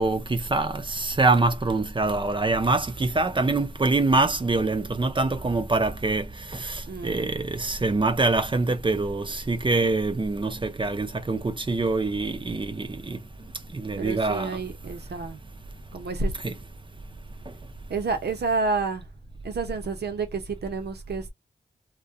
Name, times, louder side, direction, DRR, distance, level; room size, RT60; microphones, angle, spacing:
voice 1, 0.0-6.3 6.5-13.2 13.7-14.6 16.4-16.5, right 3 dB, 30° right, 0.5 m, -25 dB
voice 2, 6.9-7.5 10.5-10.6 14.0-15.4 15.9-16.3 17.9-19.1 19.4-21.3, right 4 dB, 80° right, 0.7 m, -30 dB
2.3 x 2.2 x 2.6 m
cardioid pair, 60°, 17 cm